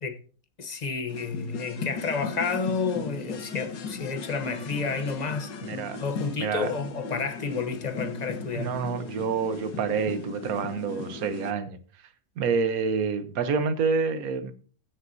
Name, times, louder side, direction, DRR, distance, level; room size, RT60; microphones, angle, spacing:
voice 1, 0.6-5.5 6.0-8.7, left 5 dB, 35° left, 0.7 m, -30 dB
sound 1, 1.1-11.5, left 4 dB, 90° left, 2.0 m, -37 dB
voice 2, 5.6-6.0 6.4-6.7 8.5-11.8 12.4-14.5, right 5 dB, 60° right, 1.3 m, -28 dB
16.0 x 7.9 x 2.7 m
omnidirectional pair, 1.9 m